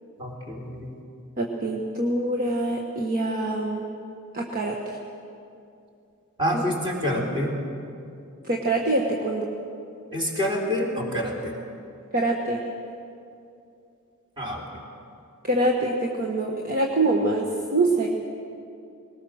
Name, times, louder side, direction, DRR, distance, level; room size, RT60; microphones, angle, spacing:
voice 1, 0.2-0.9 6.4-7.5 10.1-11.5 14.4-14.6, equal, 20° right, -1 dB, 3.7 m, -27 dB
voice 2, 1.4-3.8 4.3-4.8 6.5-6.6 8.5-9.5 12.1-12.6 15.4-18.1, right 2 dB, 40° right, 0 dB, 1.4 m, -24 dB
21.0 x 19.0 x 6.4 m, 2.5 s
head